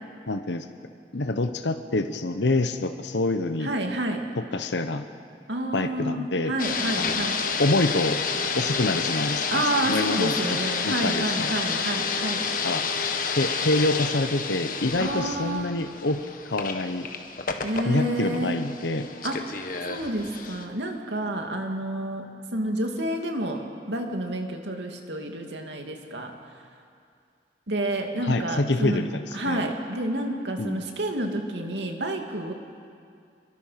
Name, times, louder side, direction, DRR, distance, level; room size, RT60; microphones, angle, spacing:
voice 1, 0.3-0.7 1.1-3.7 4.5-5.0 5.7-6.5 6.9-7.3 7.6-8.2 8.5-10.6 10.8-11.5 12.6-12.8 13.3-16.2 16.4-17.1 17.9-19.1 28.2-29.6 30.6-30.9, left 2 dB, 80° left, 8 dB, 1.0 m, -26 dB
voice 2, 3.6-4.2 5.5-7.4 9.5-12.4 15.0-15.8 17.6-18.6 19.2-19.6 19.9-26.3 27.7-29.0 29.3-32.5, right 1 dB, 80° right, 3 dB, 2.5 m, -29 dB
sound 1, 6.6-20.6, left 5 dB, 50° left, 1.5 m, -30 dB
28.0 x 23.0 x 5.9 m, 2.4 s
head